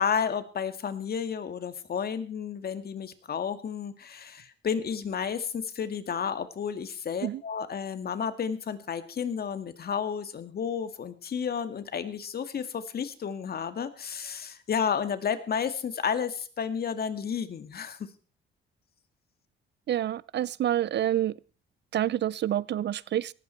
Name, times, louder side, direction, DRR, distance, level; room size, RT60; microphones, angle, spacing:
voice 1, 0.0-18.1, left 7 dB, 50° left, 10 dB, 2.1 m, -32 dB
voice 2, 19.9-21.3 21.9-23.3, right 11 dB, 60° right, 22 dB, 0.7 m, -28 dB
18.5 x 14.5 x 4.5 m, 0.38 s
cardioid pair, 90°, 20 cm